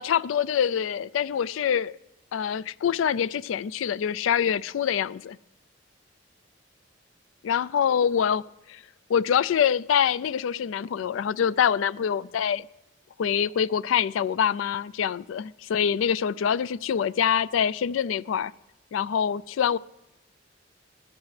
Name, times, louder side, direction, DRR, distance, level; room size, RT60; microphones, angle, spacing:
voice 1, 0.0-1.9 2.3-5.4 7.4-8.4 8.7-8.8 9.1-12.7 13.2-18.5 18.9-19.8, left 8 dB, 90° left, 0.3 m, -25 dB
17.0 x 15.0 x 3.2 m
head